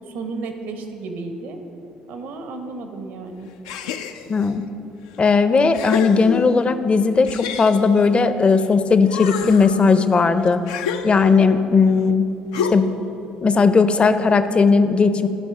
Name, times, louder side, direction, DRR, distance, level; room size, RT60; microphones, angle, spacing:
voice 1, 0.1-1.6 2.1-3.5, right 3 dB, 75° right, 6 dB, 0.9 m, -32 dB
sound 1, 3.6-4.5 5.1-5.2 5.7-6.7 7.3-8.7 9.0-11.6 12.5-13.1, left 6 dB, 90° left, 0.4 m, -29 dB
voice 2, 4.3-4.6 5.2-10.6 11.0-12.2 12.7-12.8 13.4-15.3, left 4 dB, 35° left, 11 dB, 0.5 m, -17 dB
12.5 x 5.2 x 4.8 m, 2.9 s
supercardioid pair, 70°, 3 cm